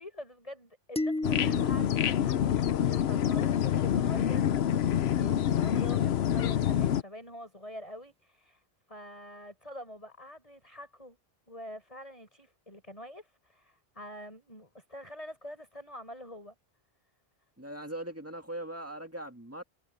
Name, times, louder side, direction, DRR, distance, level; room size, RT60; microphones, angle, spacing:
voice 1, 0.0-2.4 2.9-4.5 5.1-8.6 8.9-11.2 11.5-16.5, left 1 dB, 35° left, 7.1 m, -45 dB
sound 1, 1.0-3.4, left 2 dB, 10° left, 0.3 m, -36 dB
sound 2, 1.2-7.0, left 10 dB, 80° left, 0.9 m, -27 dB
voice 2, 17.6-19.6, right 1 dB, 15° right, 2.1 m, -40 dB
omnidirectional pair, 1.1 m